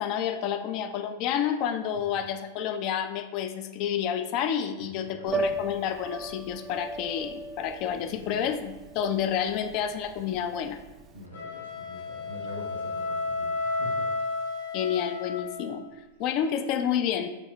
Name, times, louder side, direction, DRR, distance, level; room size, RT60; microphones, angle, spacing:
voice 1, 0.0-10.8 14.7-15.9 16.2-17.3, left 8 dB, 40° left, 8 dB, 0.3 m, -29 dB
voice 2, 4.8-5.5 7.9-8.4 11.1-14.1, left 1 dB, 85° right, -1 dB, 1.0 m, -45 dB
Piano, 5.3-11.2, right 3 dB, 25° right, 0.4 m, -36 dB
sound 1, 11.2-15.8, left 3 dB, 65° left, 0.9 m, -32 dB
4.1 x 3.0 x 3.3 m, 1.1 s
figure-of-eight pair, 90°, 0 cm